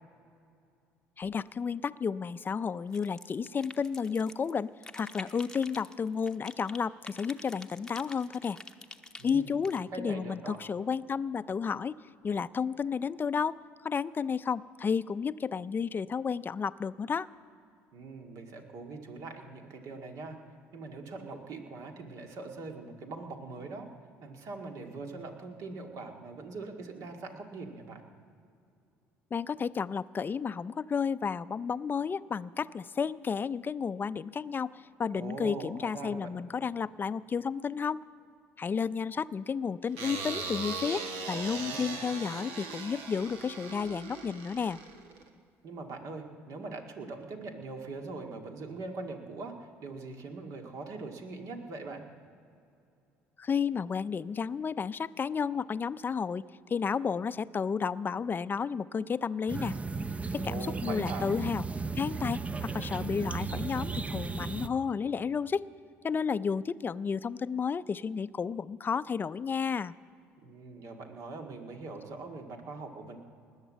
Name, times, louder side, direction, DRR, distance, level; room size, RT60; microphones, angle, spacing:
voice 1, 1.2-8.6 9.2-12.0 12.2-17.3 29.3-38.0 38.6-44.8 53.4-59.7 60.3-61.6 62.0-65.7 66.0-69.9, left 6 dB, 30° left, 15 dB, 0.4 m, -32 dB
sound 1, 2.9-4.5 4.8-6.8 7.0-9.8, left 2 dB, 10° left, 0.9 m, -47 dB
voice 2, 9.2-9.6 9.9-10.6 17.9-20.4 20.7-23.9 24.2-28.0 35.1-36.3 41.5-41.9 45.6-52.0 60.3-61.3 70.4-73.2, right 3 dB, 65° right, 3 dB, 1.9 m, -42 dB
sound 2, 40.0-45.3, right 4 dB, 90° right, 1.3 m, -39 dB
sound 3, 59.5-64.7, right 4 dB, 20° right, 0.6 m, -35 dB
19.5 x 8.0 x 7.4 m, 2.4 s
supercardioid pair, 75°, 6 cm